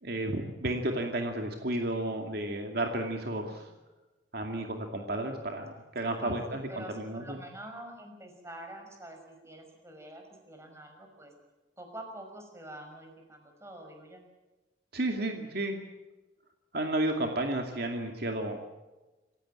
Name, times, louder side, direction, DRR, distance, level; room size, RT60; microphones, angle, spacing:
voice 1, 0.0-3.7 4.3-7.4 14.9-15.8 16.7-18.6, right 1 dB, 55° right, 3 dB, 2.4 m, -32 dB
voice 2, 3.4-3.8 6.1-11.3 11.8-14.2, right 1 dB, 15° right, 3 dB, 5.7 m, -46 dB
27.5 x 16.0 x 8.9 m, 1.1 s
head